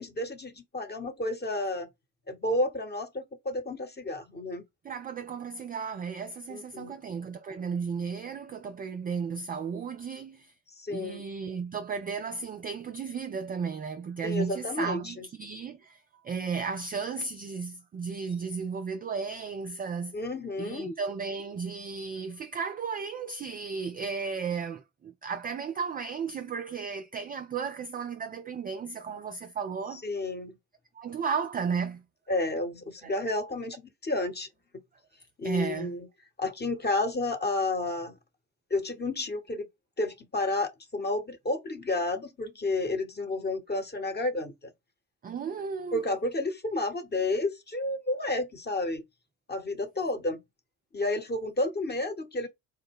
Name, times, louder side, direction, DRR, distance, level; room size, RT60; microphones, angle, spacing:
voice 1, 0.0-1.9 2.3-4.6 6.5-6.9 10.8-11.2 14.2-15.2 20.1-21.0 29.9-30.5 32.3-34.5 35.4-36.1 36.4-38.1 38.7-39.7 40.0-44.7 45.9-49.0 49.5-50.4 50.9-52.5, left 2 dB, 20° left, 0.9 m, -31 dB
voice 2, 4.8-10.5 10.9-20.1 20.6-30.0 30.9-32.0 33.0-33.3 35.4-36.0 45.2-46.0, right 5 dB, 20° right, 0.3 m, -34 dB
4.3 x 2.1 x 3.5 m
figure-of-eight pair, 45°, 47 cm